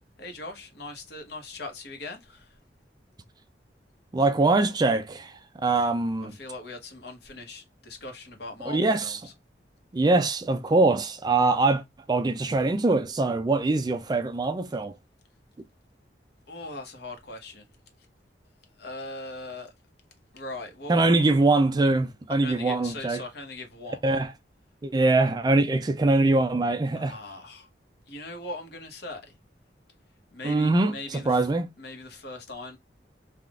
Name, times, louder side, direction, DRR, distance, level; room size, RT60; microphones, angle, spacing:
voice 1, 0.2-2.6 5.7-5.8 6.2-9.3 16.5-17.7 18.8-19.7 20.3-21.0 22.3-24.2 26.9-27.7 28.1-29.4 30.3-31.5 31.8-32.8, left 2 dB, 65° left, 1.0 m, -40 dB
voice 2, 4.1-6.3 8.7-9.2 9.9-11.8 12.1-15.0 20.9-23.2 24.0-24.3 24.8-27.1 30.4-31.7, right 2 dB, 25° right, 0.3 m, -23 dB
3.5 x 2.3 x 2.3 m
head